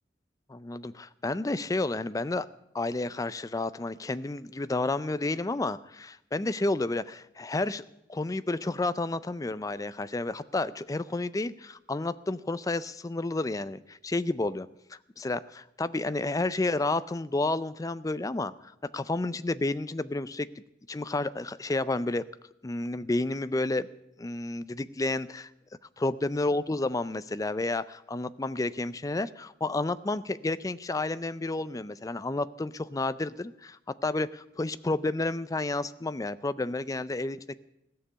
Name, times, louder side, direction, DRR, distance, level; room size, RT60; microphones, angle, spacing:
voice 1, 0.5-2.5 2.7-14.7 15.2-20.5 20.9-22.2 22.6-23.9 24.2-25.5 26.0-37.5, left 2 dB, 20° left, 15 dB, 0.4 m, -31 dB
16.0 x 6.8 x 9.9 m, 0.82 s
head